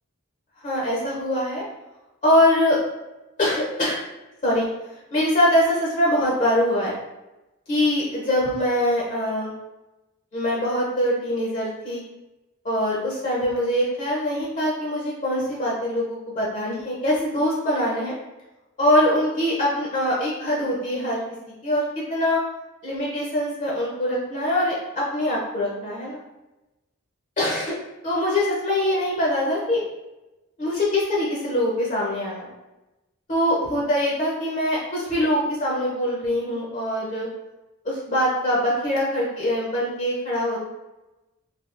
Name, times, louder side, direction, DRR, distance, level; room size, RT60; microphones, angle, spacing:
voice 1, 0.6-1.6 2.2-2.8 3.4-4.0 4.4-4.7 5.1-6.9 7.7-9.5 10.3-12.0 12.6-18.1 18.8-21.2 21.6-21.8 22.1-22.4 22.8-26.2 27.4-27.8 28.0-29.8 30.6-32.5 33.3-37.3 37.8-40.6, left 1 dB, 35° left, -4 dB, 0.6 m, -23 dB
3.4 x 2.3 x 2.5 m, 1.0 s
head